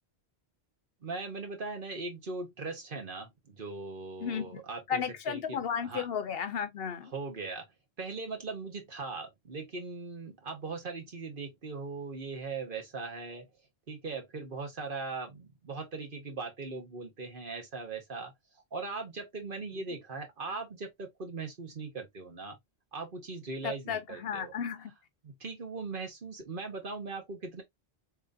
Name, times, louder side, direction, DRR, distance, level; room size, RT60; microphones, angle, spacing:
voice 1, 1.0-5.0 5.3-6.1 7.1-7.7 8.0-13.5 13.9-18.3 18.7-22.6 22.9-24.5 25.2-27.6, right 4 dB, 55° right, 1.4 m, -39 dB
voice 2, 4.2-4.6 4.9-7.1 23.6-24.9, left 7 dB, 65° left, 0.8 m, -34 dB
3.8 x 3.2 x 2.6 m
omnidirectional pair, 1.1 m